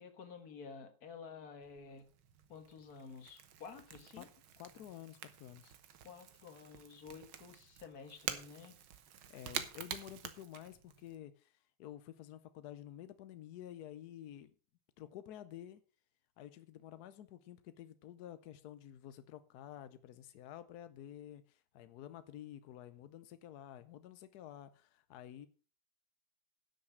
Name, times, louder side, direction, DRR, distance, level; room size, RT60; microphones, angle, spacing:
voice 1, 0.0-2.1 2.5-4.3 6.0-8.8, left 5 dB, 50° left, 1.9 m, -51 dB
Crackle / Crack, 1.6-11.2, right 9 dB, 70° right, 1.8 m, -48 dB
voice 2, 4.6-5.7 9.3-14.5 15.0-15.8 16.4-25.5, left 11 dB, 70° left, 0.9 m, -51 dB
11.5 x 6.5 x 6.2 m
omnidirectional pair, 2.4 m